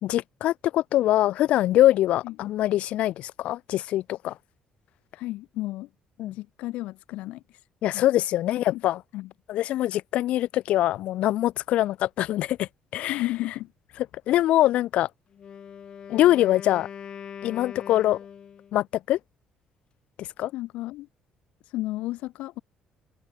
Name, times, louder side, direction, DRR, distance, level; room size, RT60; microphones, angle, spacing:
voice 1, 0.0-4.3 6.2-6.4 7.8-9.0 9.5-13.2 14.3-15.1 16.1-16.9 17.4-18.2 18.7-19.2 20.2-20.5, left 14 dB, 70° left, 0.5 m, -23 dB
voice 2, 5.1-5.9 6.3-7.6 7.9-8.0 8.7-8.8 9.1-9.3 9.6-9.9 13.1-13.7 20.5-21.1 21.6-22.6, left 17 dB, 90° left, 1.9 m, -33 dB
Wind instrument woodwind instrument, 15.3-18.8, left 8 dB, 40° left, 2.1 m, -41 dB
cardioid pair, 140°, 2 cm